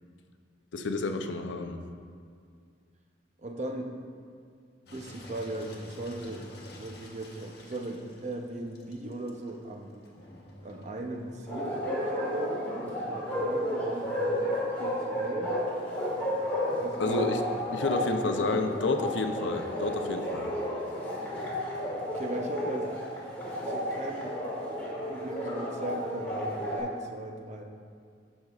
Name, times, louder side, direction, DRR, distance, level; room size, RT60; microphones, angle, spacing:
voice 1, 0.7-1.8 17.0-17.4 17.7-20.5, left 3 dB, 75° left, 6 dB, 0.5 m, -30 dB
voice 2, 3.4-3.9 4.9-9.9 10.6-14.2 14.8-15.6 16.8-17.3 18.0-18.7 22.1-22.9 23.6-24.4 25.0-27.7, right 2 dB, 40° right, 2 dB, 0.6 m, -38 dB
Engine, 4.9-12.2, left 1 dB, 55° left, 1.0 m, -50 dB
Bark, 11.5-26.8, equal, 10° left, 1.9 m, -32 dB
14.0 x 5.4 x 2.4 m, 2.2 s
head